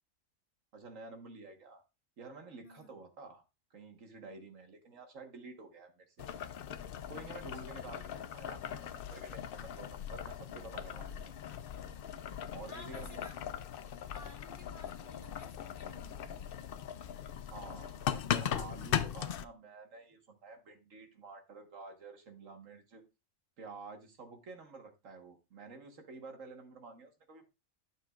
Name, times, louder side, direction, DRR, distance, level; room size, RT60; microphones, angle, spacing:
voice 1, 0.7-1.8 2.2-3.4 3.7-6.3 7.1-11.3 12.5-13.2 17.5-23.0 23.6-27.4, right 3 dB, 70° right, 1.7 m, -50 dB
voice 2, 2.6-2.9 12.7-13.4 14.1-16.3, left 3 dB, 40° left, 1.7 m, -53 dB
Boiling, 6.2-19.4, left 9 dB, 60° left, 0.6 m, -39 dB
12.0 x 6.8 x 2.4 m
omnidirectional pair, 1.4 m